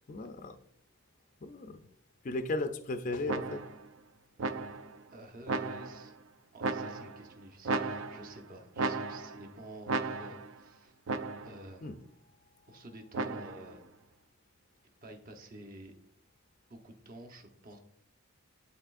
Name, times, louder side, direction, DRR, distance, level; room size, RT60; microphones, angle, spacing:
voice 1, 0.1-0.6 1.4-1.8 2.2-3.6 11.8-11.9, left 2 dB, 35° left, 8 dB, 0.4 m, -35 dB
sound 1, 3.3-3.9 4.4-5.0 5.5-6.1 6.6-7.3 7.6-8.4 8.8-9.5 9.9-10.6 11.1-11.7 13.1-13.7, right 3 dB, 60° right, 0.4 m, -35 dB
voice 2, 5.1-6.1 6.5-11.0 11.4-11.9 12.7-13.9 15.0-15.9 16.7-17.8, right 1 dB, 40° right, 3 dB, 0.9 m, -50 dB
10.5 x 4.1 x 2.5 m, 0.72 s
head